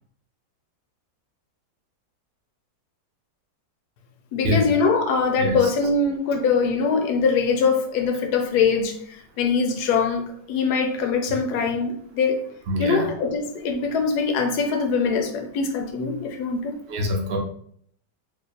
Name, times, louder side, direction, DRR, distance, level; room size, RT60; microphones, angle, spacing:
voice 1, 4.3-12.4 12.8-16.8, left 5 dB, 70° left, 4 dB, 1.1 m, -23 dB
voice 2, 12.7-13.1 16.9-17.4, equal, 65° right, 1 dB, 0.6 m, -24 dB
2.9 x 2.1 x 4.1 m, 0.63 s
omnidirectional pair, 1.9 m